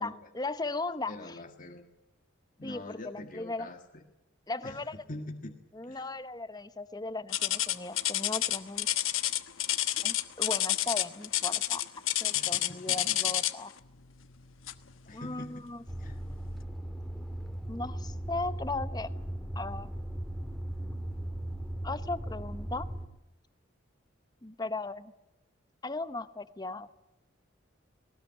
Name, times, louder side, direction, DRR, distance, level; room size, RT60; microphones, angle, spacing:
voice 1, 0.0-1.4 2.6-3.7 4.5-4.9 5.7-8.9 10.0-11.8 12.2-13.7 15.1-15.8 17.7-19.1 19.5-19.9 21.8-22.9 24.4-25.1 25.8-26.9, left 2 dB, 20° left, 13 dB, 0.9 m, -37 dB
voice 2, 1.1-1.9 2.6-4.0 4.6-5.6 5.9-6.0 12.3-13.3 15.0-15.6 16.0-16.2, left 1 dB, 40° left, 4 dB, 1.6 m, -44 dB
sound 1, 7.3-13.7 14.7-14.9 15.5-15.6 16.3-16.4, left 14 dB, 90° left, 1.2 m, -29 dB
sound 2, 15.9-23.0, right 1 dB, ahead, 2.0 m, -38 dB
20.0 x 19.0 x 9.6 m, 0.95 s
head